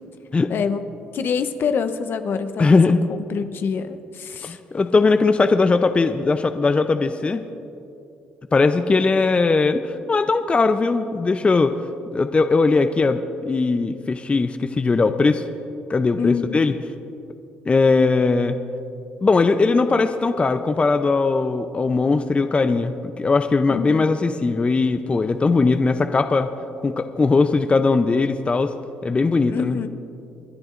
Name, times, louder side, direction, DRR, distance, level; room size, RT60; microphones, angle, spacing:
voice 1, 0.5-0.8 1.1-2.8 3.1-4.6 16.2-16.6 23.7-24.1 29.5-29.9, left 6 dB, 60° left, 9 dB, 0.8 m, -26 dB
voice 2, 2.6-3.0 4.4-7.4 8.5-11.7 12.1-15.4 15.9-16.7 17.7-18.6 19.2-26.5 26.8-28.7 29.0-29.8, left 3 dB, 30° left, 9 dB, 0.6 m, -19 dB
29.5 x 10.5 x 2.6 m, 2.7 s
supercardioid pair, 65°, 4 cm